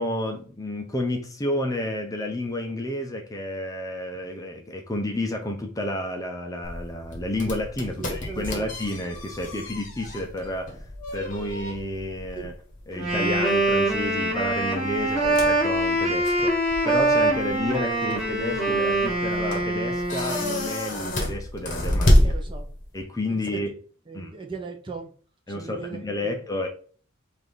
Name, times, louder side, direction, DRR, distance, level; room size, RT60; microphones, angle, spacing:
voice 1, 0.0-12.5 12.9-22.3 22.9-23.7 24.1-24.3 25.5-26.7, left 1 dB, 15° left, 0.6 m, -31 dB
sound 1, 6.6-23.0, left 1 dB, 40° left, 1.0 m, -29 dB
voice 2, 8.0-8.7 12.4-12.5 22.2-22.7 23.3-23.6 24.1-25.1 25.5-26.0 26.2-26.4, right 4 dB, 25° right, 0.8 m, -38 dB
Wind instrument woodwind instrument, 12.9-20.7, right 1 dB, ahead, 1.6 m, -24 dB
5.0 x 2.6 x 3.8 m
head